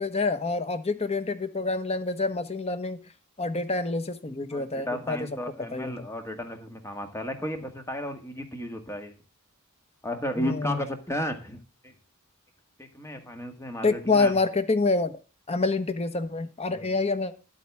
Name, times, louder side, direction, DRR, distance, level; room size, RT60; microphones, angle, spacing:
voice 1, 0.0-3.0 3.4-5.4 5.7-5.9 10.4-10.8 13.8-15.2 15.5-17.3, left 3 dB, 30° left, 10 dB, 1.1 m, -27 dB
voice 2, 4.5-9.2 10.0-11.9 12.8-14.3 16.7-17.0, left 1 dB, 15° left, 5 dB, 1.6 m, -34 dB
11.5 x 8.9 x 3.5 m, 0.32 s
head